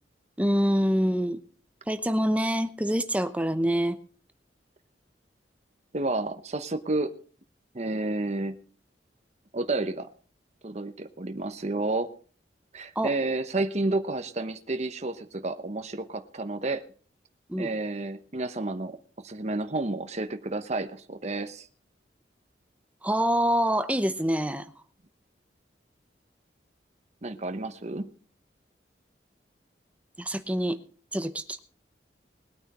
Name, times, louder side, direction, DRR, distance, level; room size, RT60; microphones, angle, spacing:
voice 1, 0.4-1.4 1.9-4.0 13.0-13.1 17.5-17.7 23.0-24.7 30.2-30.8 31.1-31.6, equal, 10° right, 10 dB, 0.8 m, -26 dB
voice 2, 5.9-7.1 7.7-8.6 9.5-10.1 10.6-12.1 12.7-16.8 17.6-21.7 27.2-28.1, right 2 dB, 40° right, 8 dB, 0.9 m, -30 dB
20.5 x 9.1 x 4.2 m, 0.41 s
head